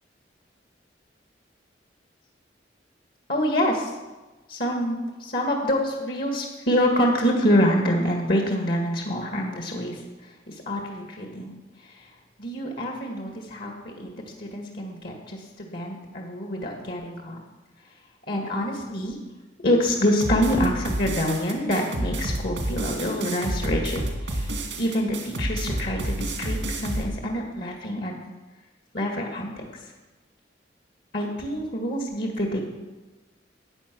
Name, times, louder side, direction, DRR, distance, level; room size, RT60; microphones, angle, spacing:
voice 1, 3.3-4.0 4.5-12.1 12.4-14.1 14.4-17.4 17.8-17.9 18.3-19.2 19.6-28.1 28.9-29.9 31.1-32.6, equal, 55° left, 2 dB, 1.8 m, -26 dB
sound 1, 20.2-27.0, right 1 dB, 85° right, 2.2 m, -29 dB
14.5 x 9.3 x 6.1 m, 1.2 s
head